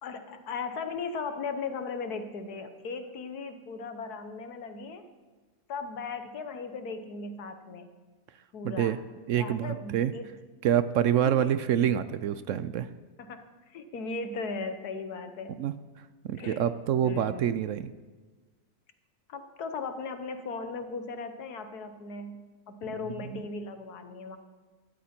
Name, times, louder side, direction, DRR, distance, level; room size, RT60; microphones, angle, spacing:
voice 1, 0.0-5.1 5.7-7.9 8.5-9.0 9.3-10.3 11.2-11.6 13.2-15.6 16.4-16.7 17.0-17.5 19.3-24.4, left 4 dB, 90° left, 9 dB, 1.6 m, -37 dB
voice 2, 8.6-9.0 9.3-10.1 10.6-12.9 15.6-15.7 16.3-17.9 23.2-23.4, right 10 dB, 65° right, 13 dB, 0.8 m, -26 dB
17.0 x 13.5 x 4.4 m, 1.3 s
omnidirectional pair, 1.6 m